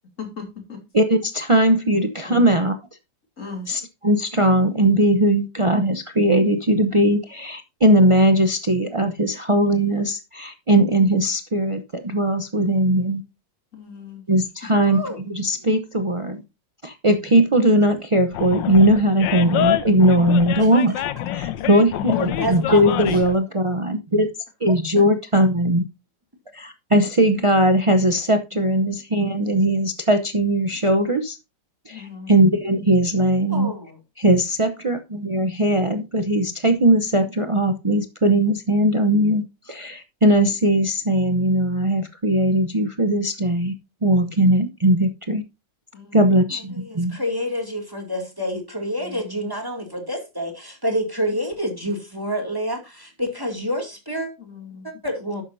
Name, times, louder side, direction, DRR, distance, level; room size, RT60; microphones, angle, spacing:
voice 1, 0.2-0.8 2.2-2.4 3.4-3.7 13.7-14.2 14.7-14.8 21.4-21.6 21.9-22.5 23.1-23.2 25.0-25.1 28.5-28.8 31.9-32.3 45.9-46.4 46.9-47.2 49.0-49.4 54.4-55.0, left 6 dB, 45° left, 3.0 m, -36 dB
voice 2, 0.9-2.8 3.7-13.2 14.3-16.4 16.8-20.9 21.3-24.3 24.6-25.8 26.5-31.4 31.9-33.7 34.2-43.7 44.0-45.4 46.1-47.2, right 1 dB, 40° right, 0.4 m, -19 dB
voice 3, 14.9-15.2 20.6-20.7 22.4-22.9 33.5-34.0 46.7-54.3 54.8-55.4, equal, 10° right, 2.5 m, -28 dB
Animal, 18.3-23.4, left 12 dB, 85° left, 1.4 m, -26 dB
12.0 x 8.7 x 2.7 m
omnidirectional pair, 2.0 m